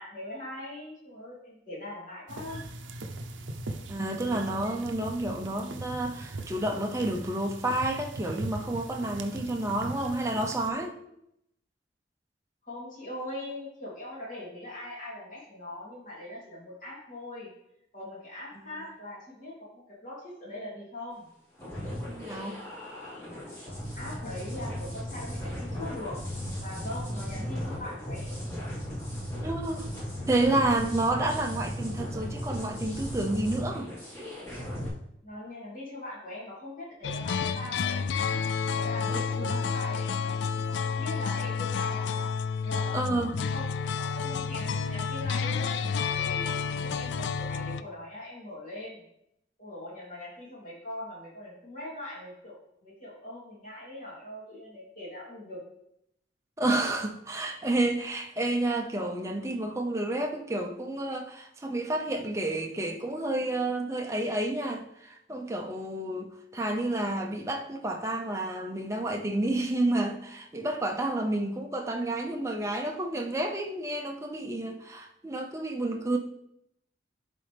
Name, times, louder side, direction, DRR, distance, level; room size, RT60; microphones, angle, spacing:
voice 1, 0.0-2.6 12.6-17.5 17.9-21.3 23.2-23.5 24.0-26.2 26.6-28.5 35.2-38.3 38.7-42.3 42.6-43.7 44.0-46.5 46.8-49.0 49.6-52.5 52.8-55.6, left 1 dB, 45° left, -6 dB, 3.0 m, -41 dB
sound 1, 2.3-10.7, right 2 dB, 85° right, 0.7 m, -40 dB
voice 2, 3.9-10.9 22.1-22.6 27.4-27.5 29.4-29.9 30.3-33.9 39.1-39.6 42.9-43.3 56.6-76.2, right 2 dB, 15° right, 1 dB, 0.6 m, -30 dB
sound 2, 21.6-34.9, equal, 15° left, 1.7 m, -36 dB
sound 3, 37.0-47.8, left 6 dB, 70° left, 0.3 m, -30 dB
11.0 x 4.2 x 3.4 m, 0.77 s
head